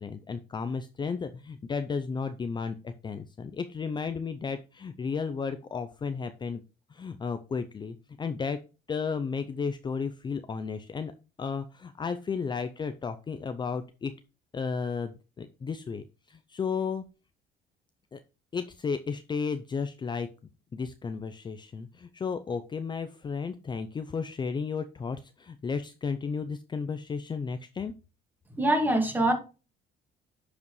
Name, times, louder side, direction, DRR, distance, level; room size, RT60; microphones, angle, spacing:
voice 1, 0.0-6.6 6.9-8.6 8.9-11.1 11.4-14.1 14.5-17.0 18.1-18.2 18.5-20.3 20.7-27.9, left 5 dB, 25° left, 0.5 m, -33 dB
voice 2, 28.5-29.3, right 1 dB, 10° right, 2.1 m, -24 dB
10.5 x 5.0 x 3.1 m
cardioid pair, 110°, 17 cm